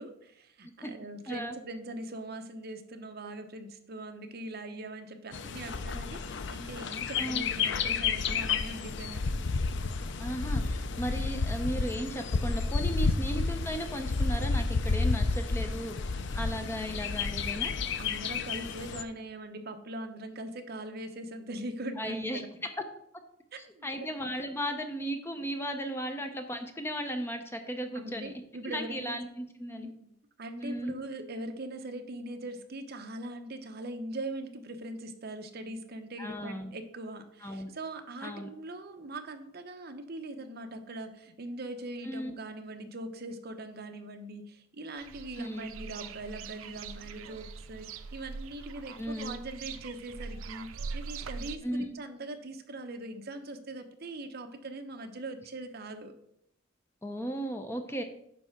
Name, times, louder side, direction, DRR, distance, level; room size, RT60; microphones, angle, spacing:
voice 1, 0.0-9.4 13.1-13.4 18.0-22.5 23.7-24.1 27.9-29.2 29.7-30.1 30.4-56.2, right 1 dB, 50° right, 6 dB, 0.8 m, -41 dB
Bird, 5.3-19.0, left 4 dB, 60° left, 0.5 m, -31 dB
voice 2, 10.2-17.7 22.0-22.4 23.8-28.3 28.6-29.9 30.6-31.0 36.2-36.7 37.4-37.7 38.2-38.5 42.0-42.4 45.4-45.7 49.0-49.4 51.6-51.9 57.0-58.0, equal, 10° left, 6 dB, 0.6 m, -36 dB
sound 1, 45.0-51.6, right 5 dB, 85° right, 0.5 m, -42 dB
9.1 x 3.3 x 5.8 m, 0.74 s
head